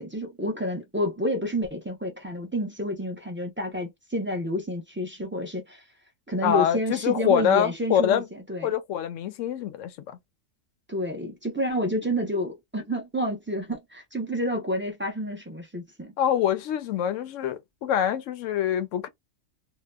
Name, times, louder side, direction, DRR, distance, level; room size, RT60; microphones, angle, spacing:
voice 1, 0.0-5.8 6.3-8.7 10.9-16.1, equal, 15° right, 0.3 m, -29 dB
voice 2, 6.4-8.3 8.6-10.2 16.2-19.1, left 9 dB, 70° left, 0.8 m, -25 dB
2.8 x 2.2 x 2.2 m
omnidirectional pair, 1.5 m